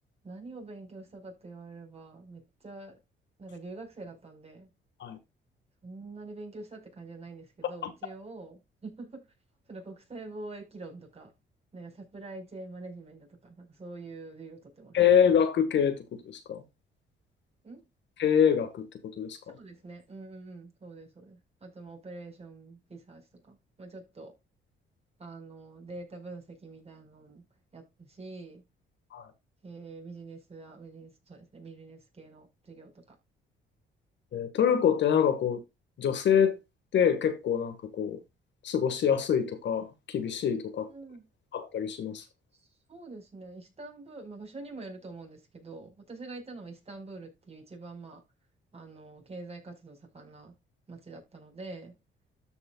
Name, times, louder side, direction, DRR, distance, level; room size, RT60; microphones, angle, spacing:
voice 1, 0.2-3.0 3.4-4.7 5.8-9.3 9.7-11.3 11.7-15.0 17.6-17.8 19.5-24.3 25.2-27.4 27.7-28.6 29.6-33.1 40.9-41.2 42.6-48.2 48.7-50.5 50.9-51.9, right 3 dB, 30° right, 4.9 m, -45 dB
voice 2, 14.9-16.0 16.3-16.6 18.2-18.9 19.2-19.4 29.1-29.3 34.3-35.6 36.0-36.6 36.9-38.2 38.6-40.9 41.5-42.2, left 8 dB, 65° left, 1.7 m, -25 dB
13.0 x 5.5 x 2.3 m
cardioid pair, 90°, 20 cm